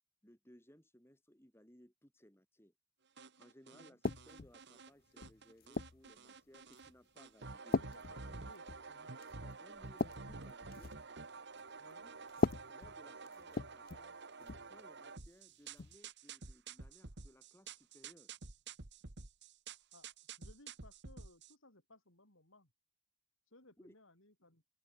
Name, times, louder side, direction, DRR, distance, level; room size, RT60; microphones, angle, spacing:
voice 1, 0.2-2.7 3.4-7.8 9.4-11.0 12.0-12.1 12.7-18.3 23.8-24.0, equal, 10° left, 4.0 m, -63 dB
sound 1, 3.2-4.9 5.2-6.9 7.2-21.5, right 4 dB, 50° right, 1.7 m, -50 dB
sound 2, 4.0-4.6 5.2-6.1 6.7-7.0 7.7-8.9 9.2-9.4 9.8-11.1 12.3-14.1 14.4-14.7 15.8-16.0, left 3 dB, 40° left, 0.6 m, -38 dB
voice 2, 7.8-9.2 11.8-12.1 19.9-22.7 23.5-24.6, left 2 dB, 60° left, 5.5 m, -62 dB
open air
head